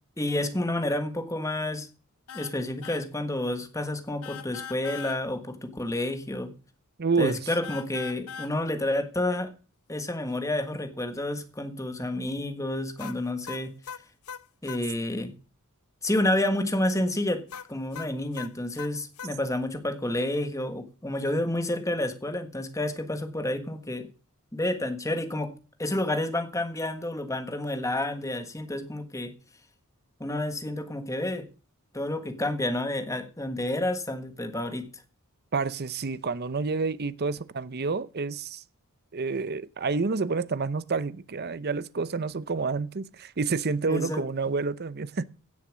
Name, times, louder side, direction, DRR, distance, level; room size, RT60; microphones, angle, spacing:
voice 1, 0.2-1.9 2.3-6.5 7.2-9.5 9.9-13.7 14.6-15.3 16.0-17.4 17.7-24.1 24.5-25.5 25.8-29.3 30.2-31.5 31.9-34.8 43.9-44.2, left 1 dB, 15° left, 1.5 m, -29 dB
sound 1, 2.3-2.6 2.8-3.1 4.2-5.2 7.6-8.5 13.0-14.8 17.5-19.3, left 7 dB, 80° left, 0.7 m, -40 dB
voice 2, 7.0-7.4 35.5-38.6 39.1-45.2, right 4 dB, 45° right, 0.7 m, -29 dB
16.5 x 7.1 x 6.2 m
head